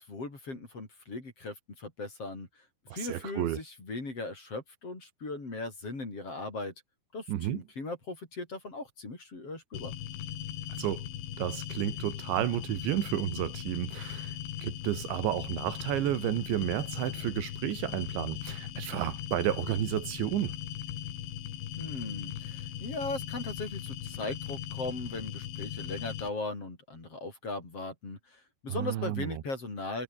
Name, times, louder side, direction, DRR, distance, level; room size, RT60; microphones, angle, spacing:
voice 1, 0.0-2.5 2.9-6.7 7.1-9.9 21.8-30.0, left 2 dB, 30° left, 6.7 m, -38 dB
voice 2, 2.9-3.6 7.3-7.6 10.8-11.1 11.4-14.4 14.6-20.5 28.7-29.4, right 13 dB, 80° right, 4.0 m, -31 dB
sound 1, 9.7-26.3, left 11 dB, 80° left, 4.6 m, -39 dB
omnidirectional pair, 5.3 m